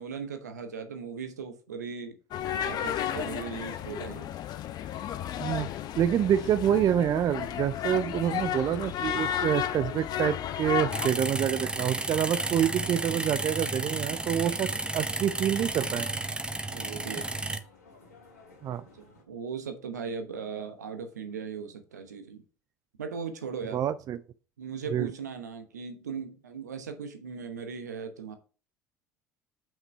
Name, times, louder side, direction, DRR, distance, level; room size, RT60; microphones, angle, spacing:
voice 1, 0.0-2.2 2.6-4.4 16.7-17.4 18.9-22.4 23.0-23.8 24.6-28.3, right 6 dB, 85° right, 1.0 m, -38 dB
sound 1, 2.3-11.1, left 10 dB, 50° left, 0.7 m, -33 dB
voice 2, 5.4-5.7 6.0-16.2 18.6-18.8 23.7-24.2 24.9-25.1, right 10 dB, 45° right, 0.4 m, -27 dB
sound 2, 9.2-19.2, left 3 dB, 85° left, 2.3 m, -56 dB
sound 3, 10.9-17.6, right 2 dB, 10° right, 0.8 m, -32 dB
5.8 x 5.5 x 4.6 m
hypercardioid pair, 65°, 9 cm